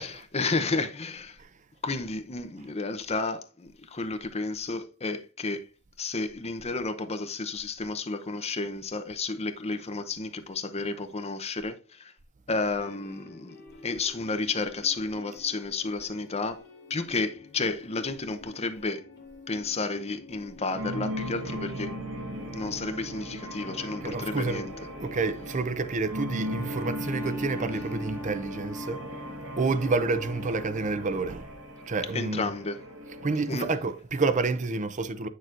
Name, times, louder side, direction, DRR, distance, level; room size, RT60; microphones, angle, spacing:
voice 1, 0.3-1.4 1.8-5.6 6.0-12.1 12.5-13.6 13.8-16.6 16.9-19.0 19.5-21.9 22.5-24.7 32.1-32.8 33.5-33.7, left 3 dB, 30° left, 0.8 m, -31 dB
sound 1, 12.7-25.7, left 2 dB, 55° left, 2.0 m, -50 dB
sound 2, 20.7-33.9, equal, 70° right, 1.5 m, -38 dB
voice 2, 24.0-24.7 25.0-29.0 29.6-31.5 31.9-32.5 33.2-35.3, right 3 dB, 40° right, 0.6 m, -29 dB
Bowed string instrument, 26.4-31.1, equal, 10° right, 0.9 m, -40 dB
7.8 x 6.5 x 2.6 m
head